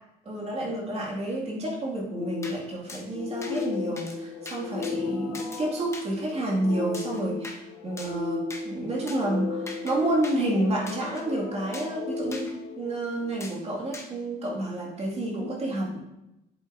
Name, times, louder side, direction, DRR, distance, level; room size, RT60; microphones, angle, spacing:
voice 1, 0.3-16.0, right 1 dB, 35° right, -3 dB, 2.2 m, -30 dB
sound 1, 2.1-13.4, left 5 dB, 80° left, 0.9 m, -35 dB
sound 2, 2.4-2.6 2.9-3.0 3.4-3.7 4.0-4.2 4.4-4.9 5.3-5.6 5.9-6.1 6.9-7.6 8.0-8.2 8.5-8.6 9.1-9.2 9.7-9.9 10.2-10.4 10.9-11.2 11.7-11.9 12.3-12.5 13.4-13.6 13.9-14.1, left 2 dB, 15° left, 1.3 m, -41 dB
8.2 x 7.8 x 2.6 m, 0.88 s
cardioid pair, 110°, 17 cm